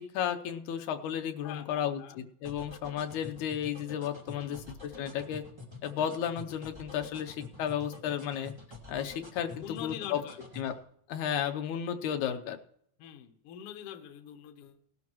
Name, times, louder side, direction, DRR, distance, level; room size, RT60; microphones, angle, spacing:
voice 1, 0.0-5.4 5.8-8.5 8.9-10.2 10.6-10.7 11.1-12.6, left 9 dB, 85° left, 7 dB, 2.3 m, -33 dB
voice 2, 1.4-2.2 4.3-4.6 9.6-10.4 13.0-14.8, left 10 dB, 65° left, 8 dB, 1.8 m, -44 dB
sound 1, 2.4-10.8, left 3 dB, 10° right, 1.4 m, -47 dB
18.5 x 12.0 x 3.0 m, 0.66 s
omnidirectional pair, 3.3 m